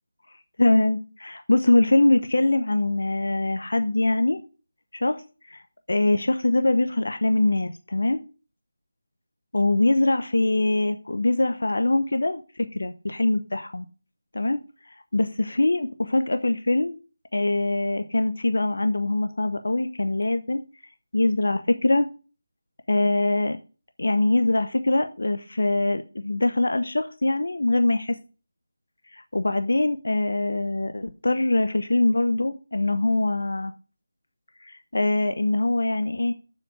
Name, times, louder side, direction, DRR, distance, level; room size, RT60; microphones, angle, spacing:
voice 1, 0.6-4.4 5.0-5.2 5.5-5.6 5.9-8.2 9.5-13.8 14.3-14.6 15.1-17.0 17.3-20.6 21.1-22.1 22.9-23.6 24.0-28.2 29.1-33.7 34.6-36.3, left 2 dB, 75° left, 9 dB, 0.9 m, -23 dB
7.6 x 6.0 x 6.6 m, 0.36 s
figure-of-eight pair, 170°, 0 cm